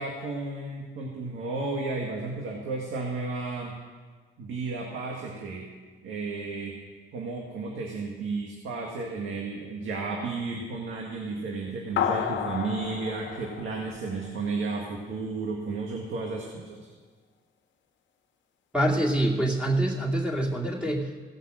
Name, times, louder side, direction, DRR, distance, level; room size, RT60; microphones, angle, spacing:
voice 1, 0.0-3.7 4.4-5.6 6.0-6.7 7.1-16.9, right 3 dB, 75° right, -1 dB, 1.8 m, -33 dB
sound 1, 12.0-14.7, left 8 dB, 70° left, 1.0 m, -31 dB
voice 2, 18.7-21.2, right 1 dB, 5° right, -1 dB, 2.4 m, -25 dB
16.5 x 5.6 x 7.6 m, 1.5 s
cardioid pair, 90°, 20 cm